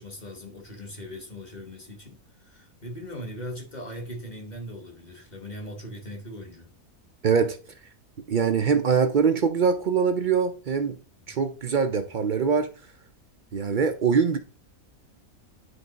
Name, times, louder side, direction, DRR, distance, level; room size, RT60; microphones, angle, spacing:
voice 1, 0.0-6.7 11.3-11.4, equal, 35° left, 1.3 m, -40 dB
voice 2, 7.2-7.6 8.3-11.0 11.3-12.7 13.5-14.4, right 6 dB, 60° right, 0.5 m, -23 dB
9.8 x 3.4 x 3.9 m
omnidirectional pair, 1.5 m